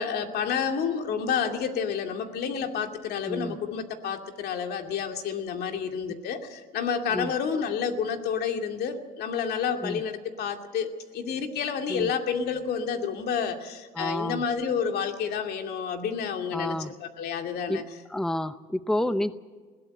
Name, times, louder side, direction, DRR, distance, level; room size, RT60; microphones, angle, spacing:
voice 1, 0.0-17.8, left 6 dB, 70° left, 5 dB, 2.5 m, -30 dB
voice 2, 3.3-3.6 7.1-7.3 9.8-10.0 11.9-12.1 14.0-14.5 16.5-16.9 17.7-17.8 18.1-19.3, left 1 dB, 5° left, 12 dB, 0.7 m, -29 dB
21.0 x 17.0 x 7.8 m, 1.5 s
cardioid pair, 110°, 17 cm